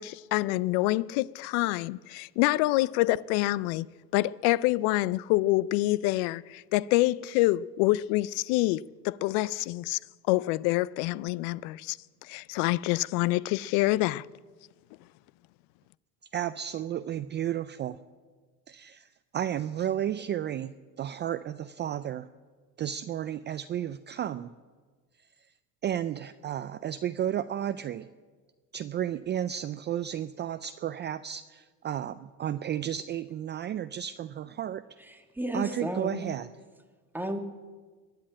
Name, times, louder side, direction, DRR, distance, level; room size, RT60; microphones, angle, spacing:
voice 1, 0.0-3.9 4.1-10.0 10.3-12.0 12.3-14.3, left 18 dB, 75° left, 0.5 m, -26 dB
voice 2, 16.3-18.0 18.7-22.3 22.8-24.5 25.8-28.1 28.7-34.8 35.5-36.5, right 10 dB, 30° right, 0.4 m, -33 dB
voice 3, 35.0-36.3 37.1-37.4, right 1 dB, 5° right, 1.5 m, -33 dB
21.5 x 7.6 x 8.8 m
cardioid pair, 120°, 38 cm